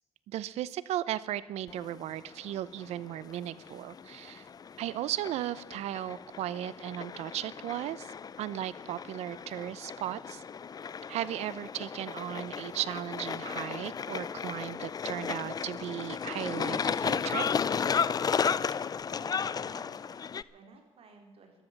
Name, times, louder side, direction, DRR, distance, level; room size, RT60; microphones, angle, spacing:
voice 1, 0.3-4.5 4.8-10.4 11.1-17.5, right 12 dB, 90° right, 18 dB, 0.7 m, -36 dB
sound 1, 1.7-20.4, left 6 dB, 35° left, 0.5 m, -34 dB
voice 2, 19.1-21.6, right 3 dB, 65° right, 3 dB, 3.8 m, -56 dB
13.0 x 13.0 x 7.2 m, 1.3 s
cardioid pair, 100°, 11 cm